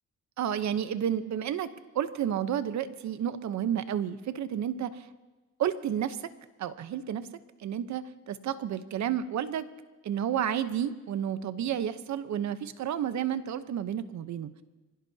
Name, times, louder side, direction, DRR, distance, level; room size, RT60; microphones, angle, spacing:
voice 1, 0.4-5.1 5.6-6.3 6.6-7.3 7.6-9.7 10.0-14.5, right 9 dB, 65° right, 12 dB, 1.0 m, -31 dB
25.0 x 16.5 x 2.8 m, 1.2 s
cardioid pair, 90°, 30 cm